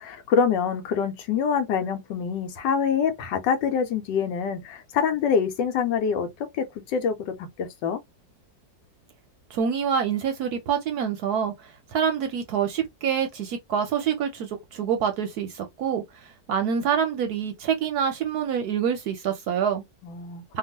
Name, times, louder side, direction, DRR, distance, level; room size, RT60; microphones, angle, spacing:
voice 1, 0.0-6.3 6.5-8.0 20.0-20.6, left 6 dB, 80° left, 1.3 m, -25 dB
voice 2, 9.5-19.8 20.5-20.6, right 7 dB, 70° right, 0.9 m, -26 dB
2.9 x 2.3 x 2.8 m
omnidirectional pair, 2.0 m